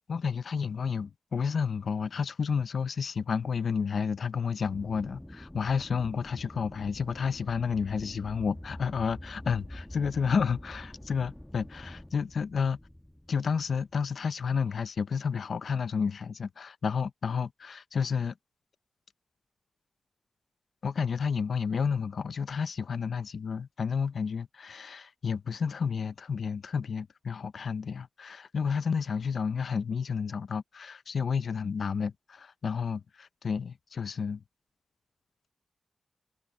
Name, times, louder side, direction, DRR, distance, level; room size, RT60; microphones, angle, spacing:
voice 1, 0.1-12.8 13.3-18.3 20.8-34.4, left 6 dB, 80° left, 0.7 m, -31 dB
Aircraft, 4.6-14.1, left 1 dB, 10° left, 1.4 m, -46 dB
wide cardioid pair, 100°, 0 cm